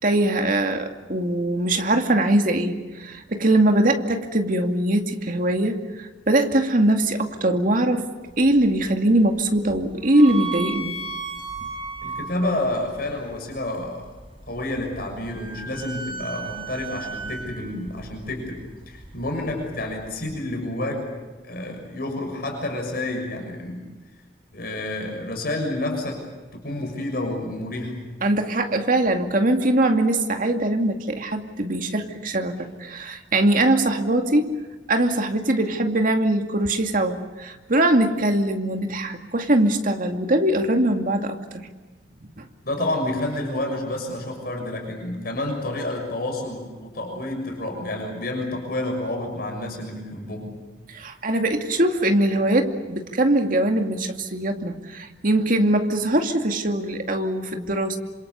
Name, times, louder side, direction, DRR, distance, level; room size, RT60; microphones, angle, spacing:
voice 1, 0.0-8.1 8.4-11.0 11.6-11.7 28.2-34.5 34.9-41.7 42.4-42.5 50.9-58.0, right 1 dB, 50° right, 5 dB, 2.4 m, -22 dB
sound 1, 8.2-20.4, right 4 dB, 30° right, 6.6 m, -37 dB
voice 2, 12.0-14.0 14.5-21.1 21.4-23.8 24.5-26.2 26.5-28.0 42.6-50.6, left 1 dB, 55° left, 2 dB, 6.5 m, -29 dB
27.5 x 26.5 x 7.1 m, 1.3 s
head